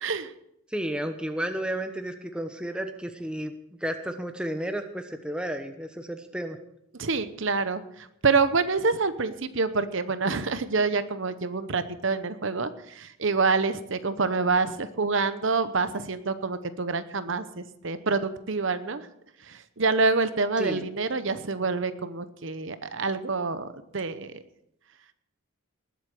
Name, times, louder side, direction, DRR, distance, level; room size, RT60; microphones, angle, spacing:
voice 1, 0.0-0.3 7.0-19.1 19.5-23.7 23.9-24.3, right 4 dB, 60° right, 12 dB, 0.9 m, -27 dB
voice 2, 0.7-3.5 3.8-6.6 20.6-20.9, right 1 dB, 5° right, 6 dB, 1.0 m, -32 dB
20.0 x 8.2 x 6.7 m, 0.76 s
head